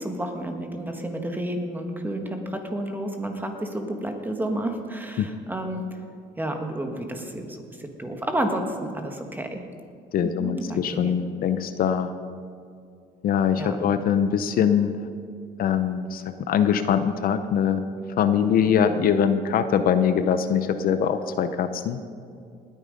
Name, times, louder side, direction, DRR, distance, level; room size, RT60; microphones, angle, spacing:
voice 1, 0.0-5.8 6.4-9.6 10.2-11.2 13.6-13.8 18.8-19.0, right 1 dB, 10° right, 4 dB, 1.6 m, -31 dB
voice 2, 10.1-12.1 13.2-15.0 15.6-17.8 18.2-22.0, left 8 dB, 60° left, 10 dB, 0.7 m, -23 dB
19.5 x 9.1 x 5.3 m, 2.4 s
cardioid pair, 110°, 17 cm